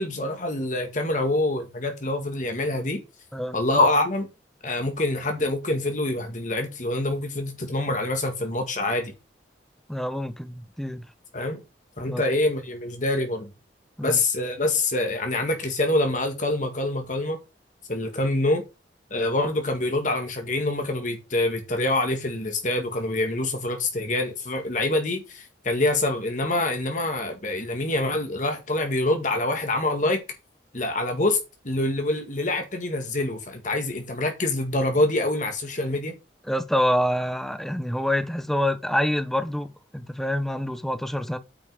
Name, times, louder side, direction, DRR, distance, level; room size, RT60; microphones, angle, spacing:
voice 1, 0.0-3.0 3.5-4.3 4.6-9.1 11.3-11.6 12.0-13.5 14.0-17.4 17.9-18.6 19.1-30.2 30.7-31.4 31.6-36.1, left 2 dB, 45° left, 1.9 m, -25 dB
voice 2, 9.9-11.0 12.1-12.2 14.0-14.2 36.5-41.4, equal, ahead, 1.0 m, -26 dB
8.8 x 5.5 x 6.8 m
head